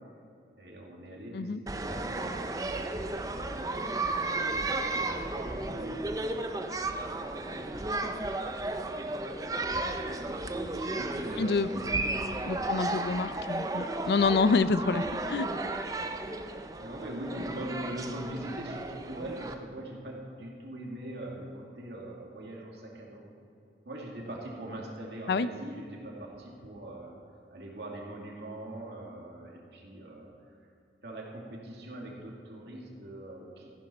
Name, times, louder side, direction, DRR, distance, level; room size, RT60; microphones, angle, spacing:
voice 1, 0.6-6.8 7.1-7.7 10.5-11.9 12.2-12.7 16.8-23.3 23.8-27.1 27.5-30.6 31.0-33.7, right 1 dB, 70° right, -2 dB, 2.3 m, -42 dB
sound 1, 1.7-19.5, right 2 dB, 20° right, 0.5 m, -34 dB
voice 2, 11.4-11.7 12.5-15.5 25.3-25.5, left 4 dB, 65° left, 14 dB, 0.4 m, -27 dB
sound 2, 11.6-14.7, left 1 dB, 45° left, 2.8 m, -47 dB
14.5 x 11.0 x 4.3 m, 2.6 s
head